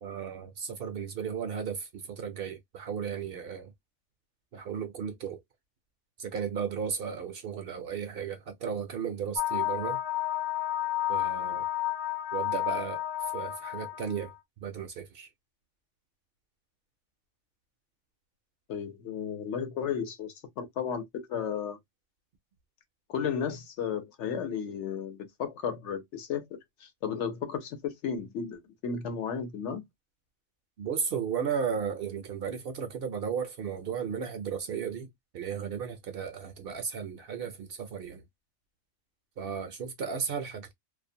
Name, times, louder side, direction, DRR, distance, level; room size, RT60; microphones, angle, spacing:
voice 1, 0.0-3.7 4.5-5.4 6.2-10.0 11.1-11.7 12.3-14.3 14.6-15.3 30.8-38.2 39.4-40.7, right 7 dB, 60° right, 0.7 m, -35 dB
sound 1, 9.4-14.3, left 13 dB, 55° left, 0.5 m, -31 dB
voice 2, 18.7-21.8 23.1-26.4 26.8-29.8, left 7 dB, 75° left, 1.0 m, -34 dB
2.5 x 2.1 x 2.6 m
omnidirectional pair, 1.2 m